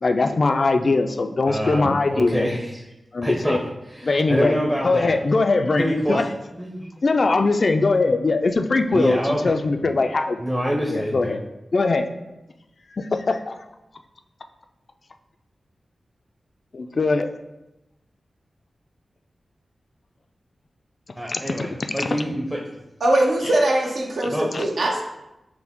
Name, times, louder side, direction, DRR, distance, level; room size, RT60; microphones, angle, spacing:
voice 1, 0.0-2.5 3.1-3.6 4.0-4.6 4.8-6.2 7.0-9.2 9.4-10.4 10.9-11.4 11.7-12.1 12.9-13.5 16.7-17.3 21.3-21.7 22.0-22.1 24.2-24.6, left 3 dB, 55° left, 7 dB, 0.3 m, -21 dB
voice 2, 1.5-2.8 3.2-3.6 3.9-5.1 5.8-6.3 6.5-6.9 8.9-9.4 9.8-10.0 10.4-11.4 21.2-22.6 24.3-24.5, equal, 10° right, -2 dB, 0.6 m, -25 dB
voice 3, 23.0-25.0, right 1 dB, 75° right, -1 dB, 0.7 m, -21 dB
5.8 x 2.0 x 3.6 m, 0.94 s
wide cardioid pair, 85°, 0 cm